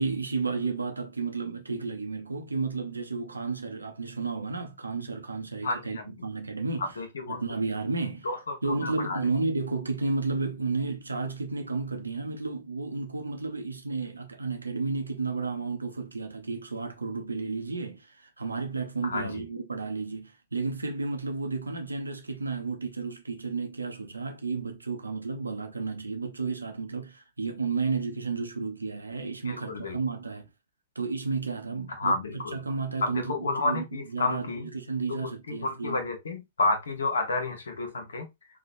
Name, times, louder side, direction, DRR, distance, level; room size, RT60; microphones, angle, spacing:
voice 1, 0.0-6.9 7.3-8.3 8.6-30.5 31.0-36.0, right 4 dB, 90° right, 0.6 m, -32 dB
voice 2, 5.6-6.1 6.8-7.4 8.2-9.2 19.0-19.5 29.4-30.0 32.0-32.6 33.0-34.7 35.1-38.3, left 3 dB, 75° left, 1.0 m, -30 dB
3.1 x 2.3 x 2.5 m
figure-of-eight pair, 110°, 0 cm